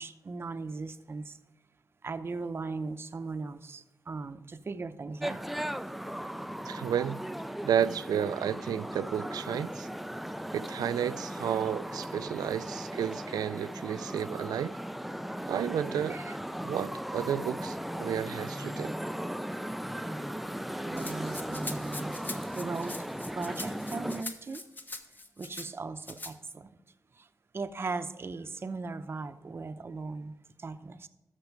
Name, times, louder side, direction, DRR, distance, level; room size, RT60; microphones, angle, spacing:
voice 1, 0.0-1.4 2.0-5.5 10.3-10.4 12.3-12.5 16.1-16.4 20.0-20.3 20.8-24.6 25.4-26.7 27.1-27.3 27.5-31.1, right 3 dB, 40° right, 0.7 m, -38 dB
sound 1, 5.2-24.2, equal, ahead, 0.3 m, -37 dB
voice 2, 6.6-7.2 7.6-9.9 10.5-14.8 15.5-16.2 16.6-18.9, right 9 dB, 85° right, 0.3 m, -32 dB
Rattle (instrument), 21.0-25.7 26.0-26.3, left 2 dB, 30° left, 1.1 m, -42 dB
14.0 x 6.0 x 4.7 m
cardioid pair, 90°, 6 cm